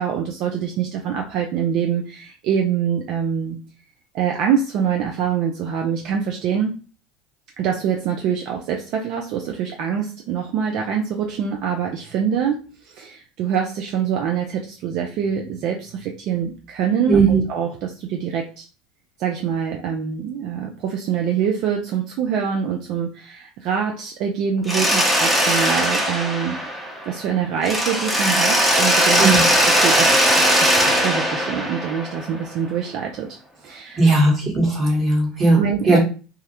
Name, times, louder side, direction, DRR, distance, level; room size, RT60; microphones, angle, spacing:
voice 1, 0.0-3.6 4.1-6.7 7.6-18.6 19.2-26.6 27.0-33.4 33.6-34.1 35.6-36.0, right 7 dB, 60° right, 2 dB, 0.4 m, -25 dB
voice 2, 17.1-17.4 29.2-29.4 34.0-35.6 35.9-36.0, right 3 dB, 30° right, -1 dB, 1.1 m, -16 dB
Mechanisms, 24.7-27.3 27.6-32.5, equal, 5° right, 0.7 m, -19 dB
2.3 x 2.1 x 2.8 m, 0.34 s
supercardioid pair, 95°, 0 cm